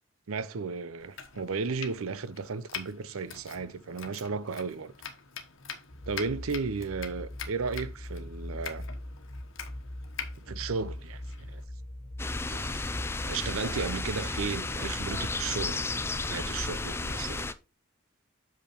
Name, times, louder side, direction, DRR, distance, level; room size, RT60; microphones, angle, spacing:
voice 1, 0.3-4.9 6.1-8.9 10.5-11.6 12.4-12.9 13.2-15.9 16.3-17.5, right 5 dB, 90° right, 0.6 m, -34 dB
Domestic sounds home sounds, 1.0-11.6, left 7 dB, 70° left, 1.2 m, -44 dB
sound 1, 5.9-17.1, left 1 dB, 50° left, 1.0 m, -41 dB
sound 2, 12.2-17.5, left 3 dB, 10° left, 0.4 m, -33 dB
6.7 x 5.6 x 4.3 m
head